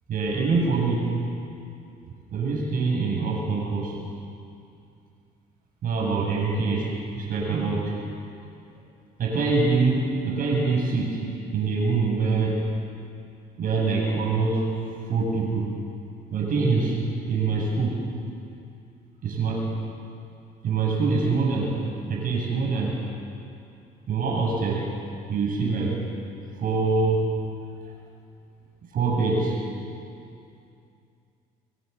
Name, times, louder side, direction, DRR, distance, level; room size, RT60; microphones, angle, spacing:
voice 1, 0.1-1.1 2.3-3.9 5.8-8.0 9.2-11.2 11.5-12.7 13.6-14.8 15.1-15.7 16.3-17.0 17.3-18.0 19.2-19.7 20.6-21.8 22.1-23.0 24.1-24.9 25.3-26.0 26.6-27.3 28.9-29.6, right 4 dB, 55° right, -1 dB, 7.5 m, -24 dB
29.0 x 23.0 x 7.0 m, 2.5 s
cardioid pair, 110°, 17 cm